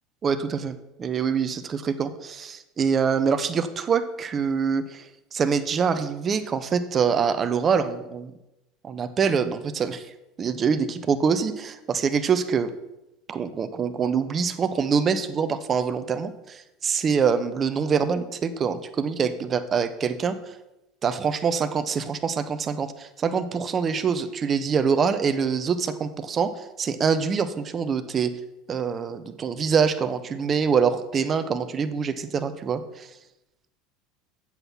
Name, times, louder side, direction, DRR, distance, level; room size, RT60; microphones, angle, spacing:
voice 1, 0.2-5.1 5.3-8.3 8.8-10.1 10.4-12.7 13.3-20.4 21.0-28.3 28.7-33.1, right 6 dB, 35° right, 12 dB, 0.9 m, -25 dB
8.0 x 7.4 x 5.8 m, 0.94 s
hypercardioid pair, 80°, 0 cm